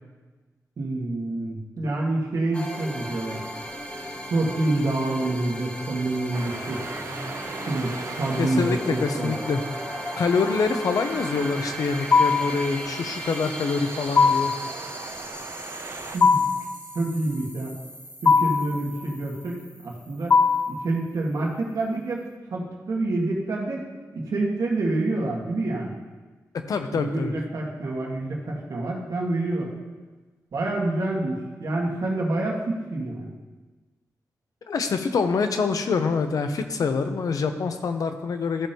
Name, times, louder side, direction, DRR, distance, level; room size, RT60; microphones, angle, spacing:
voice 1, 0.8-3.4 4.3-6.8 7.7-9.4 16.1-16.4 16.9-17.7 18.2-19.6 19.8-20.3 20.7-22.2 22.5-23.8 24.1-26.0 26.9-29.7 30.5-33.3, right 2 dB, 75° right, -2 dB, 1.7 m, -27 dB
sound 1, 2.5-21.0, equal, 20° left, 0.7 m, -37 dB
sound 2, 6.3-16.2, right 4 dB, 55° right, 0.6 m, -38 dB
voice 2, 8.4-9.6 10.2-14.5 26.7-27.3 34.7-38.7, left 4 dB, 75° left, 7 dB, 0.7 m, -25 dB
sound 3, 12.1-12.6 14.2-14.6 16.2-16.7 18.2-18.7 20.3-20.8, left 5 dB, 40° left, 0.3 m, -19 dB
14.0 x 5.2 x 2.9 m, 1.3 s
wide cardioid pair, 140°, 6 cm